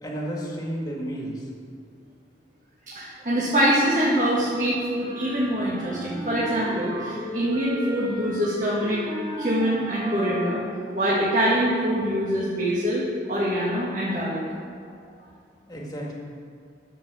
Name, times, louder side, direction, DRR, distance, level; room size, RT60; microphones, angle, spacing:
voice 1, 0.0-1.5 15.7-16.1, right 1 dB, 20° left, -2 dB, 1.9 m, -32 dB
voice 2, 2.9-9.0 9.4-10.6 10.9-14.4 14.8-14.9, equal, 45° right, -8 dB, 1.9 m, -24 dB
sound 1, 5.0-10.8, equal, 20° right, 1.4 m, -34 dB
10.5 x 7.4 x 7.0 m, 2.2 s
head